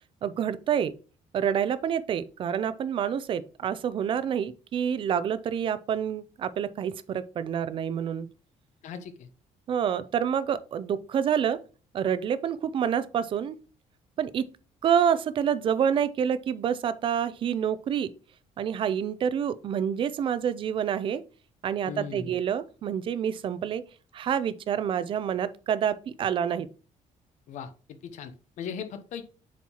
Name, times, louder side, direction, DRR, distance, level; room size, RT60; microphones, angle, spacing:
voice 1, 0.2-0.9 1.3-8.3 9.7-11.6 11.9-13.6 14.2-14.5 14.8-18.1 18.6-21.2 21.6-23.8 24.1-26.7, right 8 dB, 40° right, 0.4 m, -27 dB
voice 2, 8.8-9.3 21.9-22.3 27.5-27.7 28.0-29.2, left 7 dB, 65° left, 0.9 m, -38 dB
7.1 x 4.5 x 2.9 m
cardioid pair, 170°, 13 cm